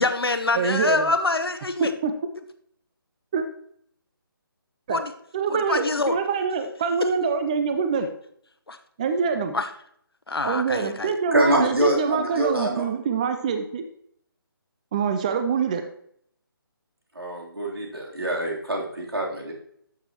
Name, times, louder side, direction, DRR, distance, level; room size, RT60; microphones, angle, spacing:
voice 1, 0.0-1.9 4.9-5.1 5.5-6.2 8.7-8.8 9.5-9.7 10.3-11.1, left 3 dB, 80° left, 8 dB, 1.0 m, -25 dB
voice 2, 0.5-1.1 1.8-2.1 3.3-3.4 4.9-5.0 5.3-8.1 9.0-9.6 10.4-13.9 14.9-15.9, right 5 dB, 20° right, 7 dB, 0.4 m, -25 dB
voice 3, 11.3-12.9 17.1-19.5, right 1 dB, 80° right, -2 dB, 3.3 m, -25 dB
12.5 x 6.8 x 2.9 m, 0.68 s
figure-of-eight pair, 150°, 12 cm